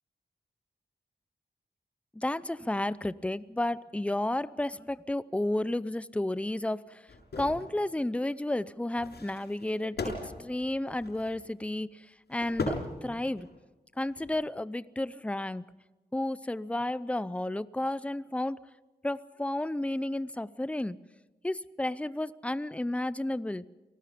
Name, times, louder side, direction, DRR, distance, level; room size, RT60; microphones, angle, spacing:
voice 1, 2.1-7.1 7.4-13.5 14.0-15.6 16.1-18.6 19.0-21.0 21.4-23.6, left 1 dB, 5° left, 17 dB, 0.6 m, -32 dB
sound 1, 7.1-7.7 9.0-11.5 12.3-13.6 14.1-14.3, left 2 dB, 80° left, 6.6 m, -38 dB
29.0 x 19.5 x 5.1 m, 1.2 s
wide cardioid pair, 95°, 17 cm